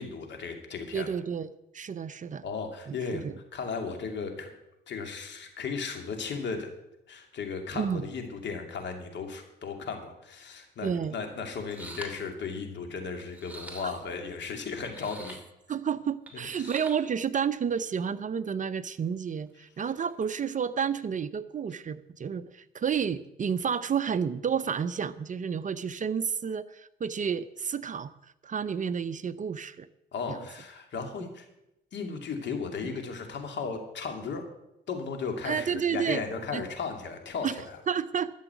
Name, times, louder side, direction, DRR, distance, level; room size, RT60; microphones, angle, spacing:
voice 1, 0.0-1.1 2.4-3.2 3.5-4.5 4.9-6.7 7.1-15.4 16.6-16.7 30.1-31.5 31.9-34.5 34.9-37.8, left 5 dB, 65° left, 4 dB, 2.6 m, -35 dB
voice 2, 0.9-1.5 1.7-2.4 2.9-3.3 7.7-8.0 10.8-11.1 13.8-13.9 15.7-29.9 30.3-30.4 31.2-31.3 32.8-32.9 35.4-36.2 36.5-36.6 37.4-37.5 37.9-38.3, right 7 dB, 40° right, 14 dB, 0.6 m, -31 dB
sound 1, 11.0-11.1 11.6-12.2 13.2-14.2 14.9-15.4 16.3-16.9 17.8-18.0 19.8-20.3, right 2 dB, 5° right, 3.0 m, -45 dB
12.5 x 7.1 x 8.1 m, 0.87 s
cardioid pair, 90°, 20 cm